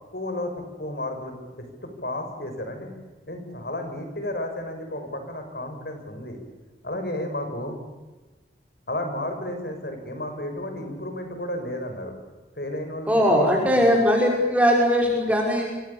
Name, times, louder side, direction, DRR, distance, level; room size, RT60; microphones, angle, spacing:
voice 1, 0.1-0.5 0.8-2.9 3.3-6.4 6.8-7.8 8.9-12.1 12.5-13.9, left 1 dB, 65° left, 6 dB, 6.6 m, -32 dB
voice 2, 13.1-15.7, equal, 10° right, -1 dB, 5.7 m, -20 dB
27.5 x 25.0 x 7.2 m, 1.2 s
head